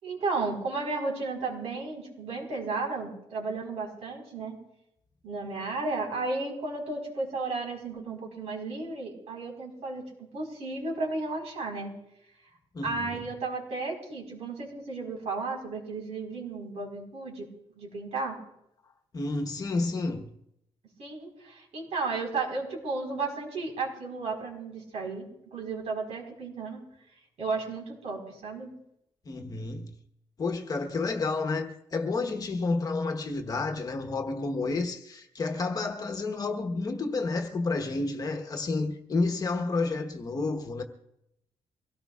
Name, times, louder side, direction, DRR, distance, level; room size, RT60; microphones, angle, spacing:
voice 1, 0.0-4.6 5.2-11.9 12.8-17.5 17.7-18.4 21.0-26.8 27.4-28.7, right 3 dB, 70° right, 4.4 m, -34 dB
voice 2, 12.7-13.3 19.1-20.3 29.2-29.9 30.4-40.8, left 3 dB, 35° left, 1.1 m, -30 dB
24.5 x 17.5 x 2.4 m
wide cardioid pair, 175°, 11 cm